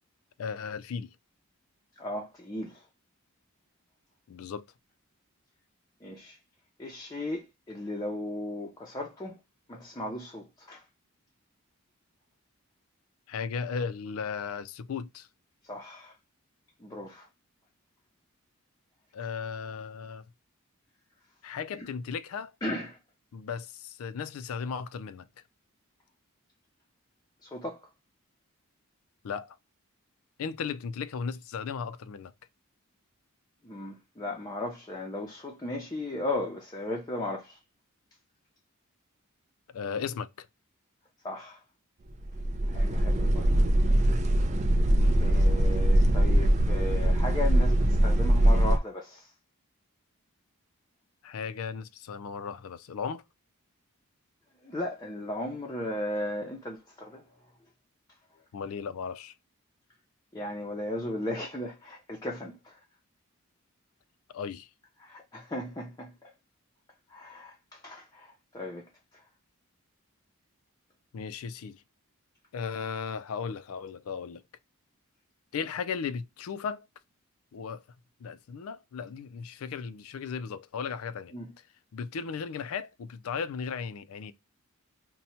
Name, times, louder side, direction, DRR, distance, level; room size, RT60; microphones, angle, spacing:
voice 1, 0.4-1.1 4.3-4.6 13.3-15.3 19.1-20.2 21.4-22.5 23.3-25.3 29.2-29.6 30.4-32.3 39.7-40.5 45.0-45.2 51.2-53.2 58.5-59.3 64.3-64.7 71.1-71.8 72.5-74.4 75.5-76.9 77.5-77.8 78.2-81.3 81.9-84.3, left 6 dB, 75° left, 0.4 m, -36 dB
voice 2, 2.0-2.8 6.0-6.4 6.8-9.4 9.7-10.8 15.7-16.1 16.8-17.3 21.8-21.9 22.6-23.0 27.4-27.8 33.6-37.6 41.2-41.6 42.7-44.1 45.2-49.3 54.6-57.2 60.3-62.8 65.0-66.3 67.1-68.9 69.1-69.2 81.3-81.5, left 1 dB, 20° left, 0.5 m, -36 dB
sound 1, 42.2-48.8, right 1 dB, 30° right, 0.4 m, -22 dB
2.8 x 2.2 x 4.1 m
head